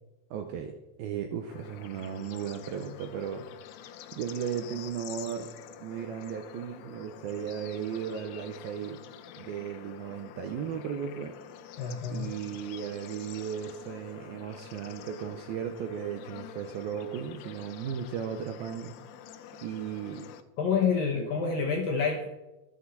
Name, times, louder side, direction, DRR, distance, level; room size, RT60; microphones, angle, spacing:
voice 1, 0.3-0.7 1.0-3.4 4.1-5.5 5.8-9.0 9.4-11.3 12.1-18.9 19.6-20.3 21.2-21.6, right 8 dB, 85° right, 4 dB, 2.1 m, -36 dB
Bird / Insect / Frog, 1.5-20.4, left 9 dB, 85° left, 2.2 m, -47 dB
voice 2, 11.8-12.3 20.6-22.3, left 6 dB, 70° left, 0 dB, 2.2 m, -28 dB
24.5 x 8.4 x 4.1 m, 1.0 s
omnidirectional pair, 5.6 m